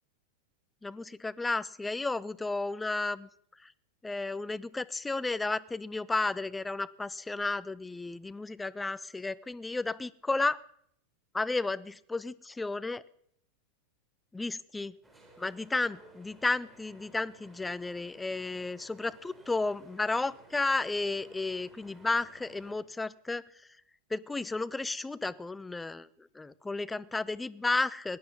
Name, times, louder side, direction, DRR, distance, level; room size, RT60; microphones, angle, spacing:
voice 1, 0.8-3.3 3.6-3.7 4.0-10.6 11.3-13.0 14.3-15.0 15.4-23.4 24.1-26.1 26.4-28.2, left 3 dB, 10° left, 20 dB, 0.5 m, -33 dB
sound 1, 15.0-22.7, right 2 dB, 10° right, 3.8 m, -57 dB
17.0 x 11.5 x 5.4 m, 0.68 s
figure-of-eight pair, 90°, 0 cm